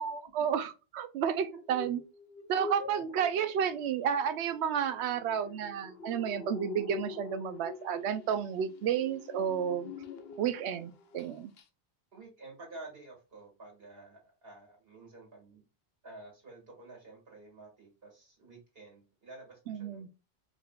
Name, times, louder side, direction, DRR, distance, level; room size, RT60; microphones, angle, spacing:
voice 1, 0.0-2.0 2.5-9.9 10.4-11.5 19.7-20.1, right 8 dB, 85° right, 0.9 m, -31 dB
sound 1, 1.4-10.7 11.0-11.3 11.6-11.7, left 5 dB, 70° left, 0.9 m, -44 dB
voice 2, 12.1-15.6 16.0-20.1, right 2 dB, 65° right, 2.3 m, -51 dB
5.0 x 3.6 x 2.3 m
omnidirectional pair, 1.1 m